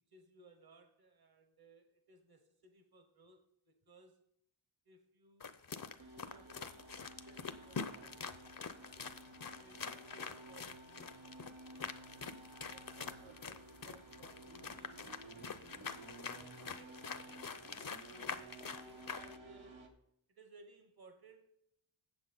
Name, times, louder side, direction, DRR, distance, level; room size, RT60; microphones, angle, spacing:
voice 1, 0.1-4.2 4.8-5.6 6.1-8.2 9.6-11.6 12.7-17.4 18.1-20.0 20.3-21.4, right 2 dB, 50° right, 7 dB, 1.3 m, -62 dB
sound 1, 5.4-19.4, left 5 dB, 45° left, 0.7 m, -46 dB
sound 2, 6.0-19.9, right 2 dB, 70° right, 1.4 m, -55 dB
8.7 x 7.1 x 5.3 m, 0.76 s
wide cardioid pair, 75°, 48 cm